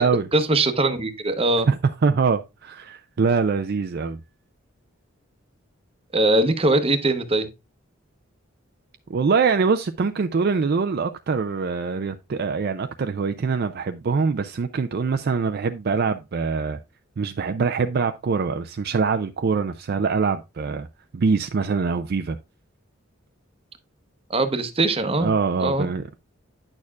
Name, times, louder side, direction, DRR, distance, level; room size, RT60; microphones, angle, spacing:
voice 1, 0.3-1.7 6.1-7.5 24.3-25.3 25.6-25.9, right 2 dB, 30° right, 0.8 m, -21 dB
voice 2, 1.7-4.2 9.1-16.8 17.2-20.9 21.1-22.4 25.2-26.1, right 5 dB, 50° right, 0.4 m, -23 dB
9.7 x 6.5 x 2.3 m
head